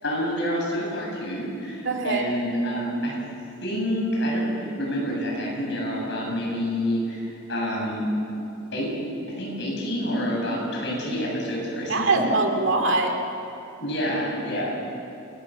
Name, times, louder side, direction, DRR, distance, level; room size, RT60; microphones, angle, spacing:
voice 1, 0.0-3.1 3.6-8.1 8.7-8.9 9.4-12.3 13.8-14.7, equal, 55° left, -3 dB, 7.9 m, -28 dB
voice 2, 1.8-2.2 11.9-13.2, right 3 dB, 60° right, 4 dB, 2.3 m, -23 dB
28.5 x 17.5 x 7.8 m, 2.8 s
head